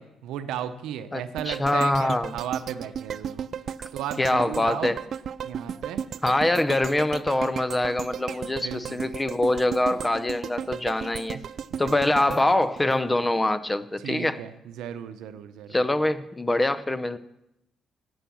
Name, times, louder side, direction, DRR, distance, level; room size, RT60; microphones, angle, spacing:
voice 1, 0.0-3.5 3.9-5.0 5.4-6.0 8.5-9.1 11.7-12.0 12.3-12.4 14.0-15.8, right 9 dB, 90° right, 11 dB, 0.8 m, -35 dB
voice 2, 1.1-2.3 3.8-3.9 4.2-5.0 6.2-11.4 11.8-14.4 15.7-17.2, left 1 dB, 15° left, 13 dB, 0.6 m, -24 dB
sound 1, 1.4-13.6 14.0-14.1, right 8 dB, 60° right, 0.3 m, -35 dB
11.5 x 7.2 x 7.1 m, 0.88 s
cardioid pair, 90°, 0 cm